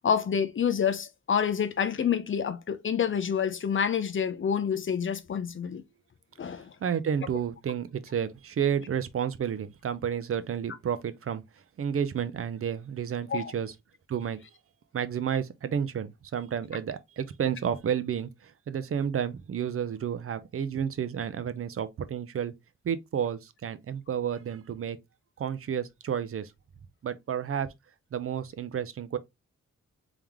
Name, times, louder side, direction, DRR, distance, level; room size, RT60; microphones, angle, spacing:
voice 1, 0.0-5.8 6.4-6.7 13.3-13.5, left 7 dB, 45° left, 0.6 m, -28 dB
voice 2, 6.8-11.4 11.8-13.7 14.1-14.4 14.9-22.5 22.8-25.0 25.4-26.5 27.0-27.7 28.1-29.2, right 8 dB, 50° right, 0.6 m, -31 dB
3.6 x 3.5 x 3.1 m
wide cardioid pair, 130°, 29 cm